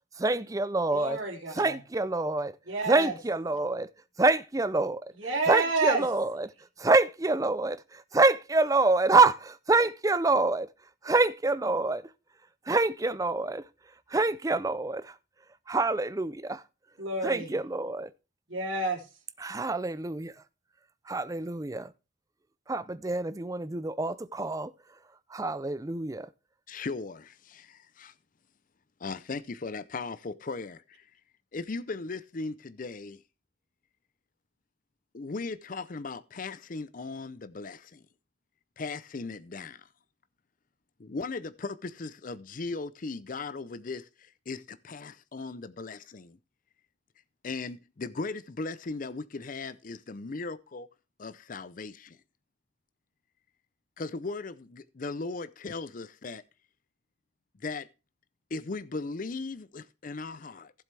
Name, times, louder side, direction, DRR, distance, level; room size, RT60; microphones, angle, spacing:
voice 1, 0.2-1.2 1.5-2.5 2.9-3.9 4.2-5.0 5.5-6.5 6.8-10.7 11.0-12.0 12.7-13.6 14.1-15.1 15.7-16.6 17.2-18.1 19.4-20.3 21.1-21.9 22.7-24.7 25.3-26.3, right 3 dB, 15° right, 0.5 m, -26 dB
voice 2, 0.9-1.8 2.7-3.2 5.1-6.1 17.0-17.6 18.5-19.0, right 3 dB, 85° right, 3.1 m, -30 dB
voice 3, 26.7-28.1 29.0-30.8 31.5-33.2 35.1-38.0 38.8-39.8 41.0-44.0 44.5-46.4 47.4-50.9 51.2-52.2 54.0-56.4 57.6-57.9 58.5-60.7, left 3 dB, 45° left, 0.5 m, -37 dB
15.0 x 7.5 x 3.3 m
head